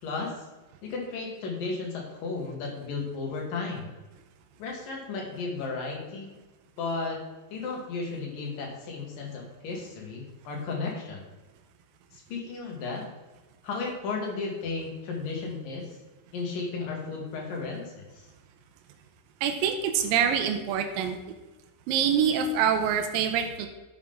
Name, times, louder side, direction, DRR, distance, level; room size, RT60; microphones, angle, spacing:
voice 1, 0.0-0.5 0.8-3.9 4.6-6.3 6.8-7.2 7.5-11.2 12.1-13.0 13.6-16.0 16.3-18.3, left 4 dB, 70° left, -1 dB, 3.6 m, -34 dB
voice 2, 19.4-21.2 21.9-23.7, right 8 dB, 80° right, 6 dB, 2.5 m, -25 dB
11.0 x 7.4 x 3.7 m, 1.2 s
omnidirectional pair, 4.1 m